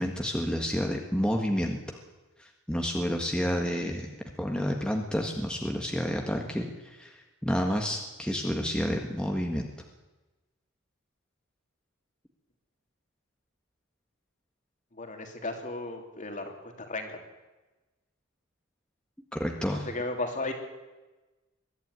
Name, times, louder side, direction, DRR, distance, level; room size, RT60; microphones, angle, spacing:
voice 1, 0.0-1.8 2.4-4.1 4.4-9.7 19.3-19.9, equal, 5° left, 2 dB, 1.7 m, -30 dB
voice 2, 14.9-17.2 19.7-20.5, left 2 dB, 40° left, 4 dB, 3.1 m, -35 dB
22.0 x 13.0 x 9.6 m, 1.1 s
head